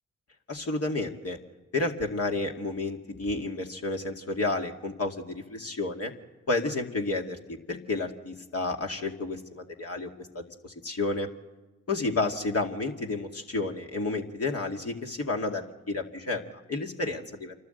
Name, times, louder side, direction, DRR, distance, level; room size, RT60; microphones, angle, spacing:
voice 1, 0.5-1.4 1.7-6.1 6.5-10.1 10.3-11.3 11.9-17.5, left 2 dB, 45° left, 2 dB, 2.3 m, -31 dB
27.5 x 12.5 x 8.0 m, 1.2 s
hypercardioid pair, 45°, 33 cm